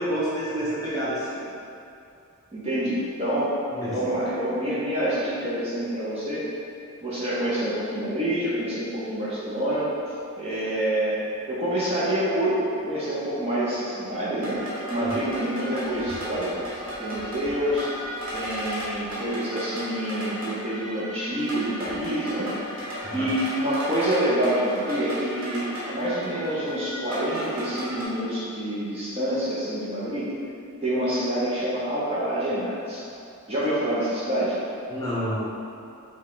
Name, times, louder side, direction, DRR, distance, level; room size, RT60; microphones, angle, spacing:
voice 1, 0.0-1.4 3.7-3.9 15.0-15.1 23.0-23.3 34.9-35.4, equal, 15° left, -9 dB, 1.0 m, -28 dB
voice 2, 2.5-3.6 3.9-6.4 7.0-9.9 10.4-14.6 14.9-16.6 17.0-17.9 18.3-22.5 23.1-30.3 30.8-33.0 33.5-34.5, right 1 dB, 30° right, -9 dB, 0.8 m, -27 dB
sound 1, 14.4-28.0, equal, 85° right, 1.1 m, -35 dB
5.1 x 2.3 x 3.8 m, 2.6 s
head